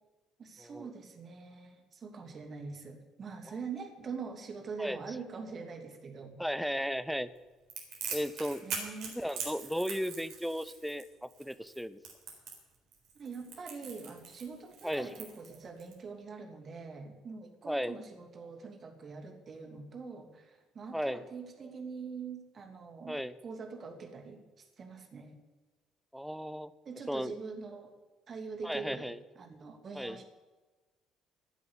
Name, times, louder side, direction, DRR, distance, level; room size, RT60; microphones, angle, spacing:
voice 1, 0.4-6.4 8.6-9.2 13.1-25.4 26.8-27.9 28.3-29.1 29.4-30.2, right 5 dB, 40° right, 4 dB, 2.8 m, -44 dB
voice 2, 6.4-7.3 8.1-8.6 9.1-12.0 14.8-15.1 17.7-18.0 20.9-21.2 23.1-23.3 26.1-26.7 27.1-27.3 28.6-29.2 29.9-30.2, equal, ahead, 14 dB, 0.9 m, -35 dB
Crackle, 7.7-15.9, right 5 dB, 55° right, 4.2 m, -42 dB
16.0 x 8.3 x 8.3 m, 1.2 s
figure-of-eight pair, 50°, 0 cm